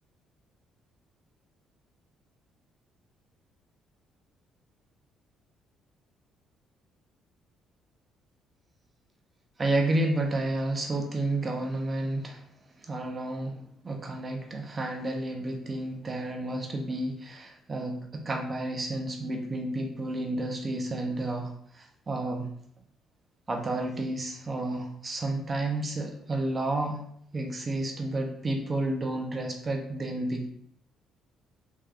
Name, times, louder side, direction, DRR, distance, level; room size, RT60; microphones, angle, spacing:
voice 1, 9.6-12.4 12.8-22.5 23.5-27.0 27.3-30.5, right 2 dB, 20° right, 3 dB, 0.5 m, -31 dB
3.5 x 2.3 x 3.2 m, 0.66 s
cardioid pair, 155°, 0 cm